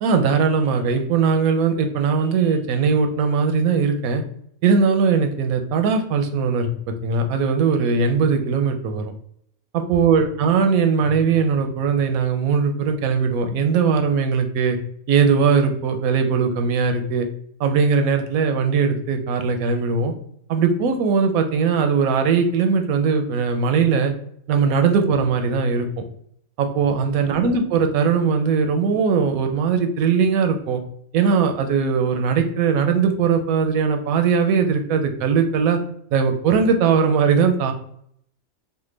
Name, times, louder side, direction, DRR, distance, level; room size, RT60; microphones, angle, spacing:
voice 1, 0.0-4.2 4.6-6.7 7.0-9.1 9.7-14.8 15.1-17.3 17.6-20.1 20.5-24.1 24.5-25.9 26.6-30.8 31.1-35.8 36.1-37.7, right 5 dB, 80° right, 6 dB, 1.0 m, -20 dB
3.3 x 2.1 x 3.1 m, 0.67 s
omnidirectional pair, 1.5 m